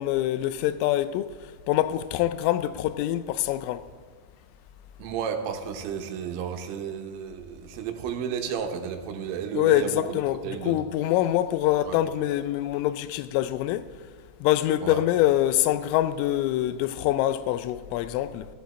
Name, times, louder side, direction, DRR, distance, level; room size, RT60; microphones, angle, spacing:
voice 1, 0.0-1.4 1.7-3.8 9.5-13.9 14.4-18.5, left 13 dB, 85° left, 3.2 m, -25 dB
voice 2, 5.0-10.8 11.9-12.0 14.8-15.0, right 7 dB, 80° right, 3.4 m, -32 dB
13.5 x 11.5 x 4.2 m
omnidirectional pair, 5.8 m